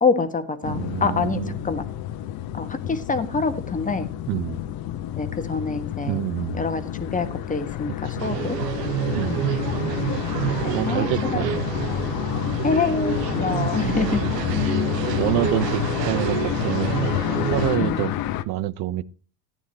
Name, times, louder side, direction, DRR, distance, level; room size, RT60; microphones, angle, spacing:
voice 1, 0.0-1.9 2.5-4.1 5.2-6.2 6.5-8.6 10.6-11.5 12.6-14.2 14.6-14.8 17.8-18.0, left 4 dB, 15° left, 8 dB, 1.3 m, -26 dB
sound 1, 0.6-18.4, left 12 dB, 50° left, 0.9 m, -29 dB
voice 2, 0.7-1.5 4.3-4.6 6.1-6.6 8.1-8.3 9.1-9.5 10.7-11.6 14.2-14.4 15.2-17.0 17.4-18.2 18.4-19.0, right 15 dB, 55° right, 19 dB, 0.7 m, -27 dB
sound 2, 8.2-17.8, right 9 dB, 85° right, 1.0 m, -28 dB
14.5 x 9.9 x 2.9 m, 0.37 s
hypercardioid pair, 90°, 48 cm